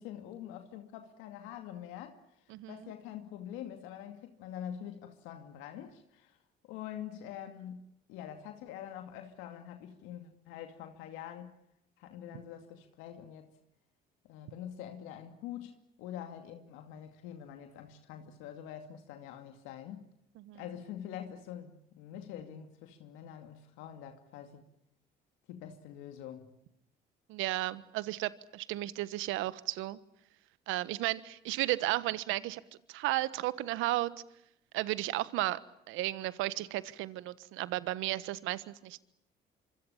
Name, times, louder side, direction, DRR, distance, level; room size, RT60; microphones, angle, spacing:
voice 1, 0.0-6.4 6.6-7.8 8.1-11.5 12.0-13.5 14.2-20.0 20.5-24.6 25.5-26.6, left 10 dB, 80° left, 2.4 m, -45 dB
voice 2, 2.5-2.9 20.4-20.6 27.3-30.0 30.7-32.6 32.9-34.1 34.7-35.6 35.9-39.0, right 17 dB, 75° right, 1.3 m, -34 dB
25.5 x 25.5 x 7.2 m
hypercardioid pair, 60°, 20 cm